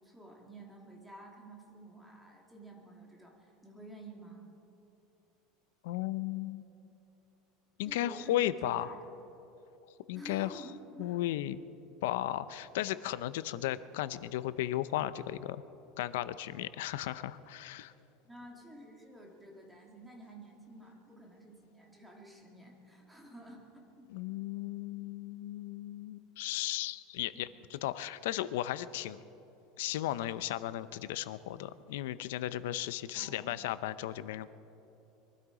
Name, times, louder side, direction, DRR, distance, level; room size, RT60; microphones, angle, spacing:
voice 1, 0.0-4.5 7.8-9.0 10.1-11.2 18.2-23.7 24.0-24.1 24.3-24.4 33.1-33.5, right 1 dB, 5° right, -1 dB, 1.9 m, -51 dB
voice 2, 5.8-6.7 7.8-8.9 10.1-10.6 11.0-11.6 12.0-15.6 16.0-17.9 24.1-29.2 29.8-34.5, left 13 dB, 80° left, 15 dB, 0.6 m, -35 dB
23.0 x 12.5 x 5.0 m, 3.0 s
cardioid pair, 170°, 0 cm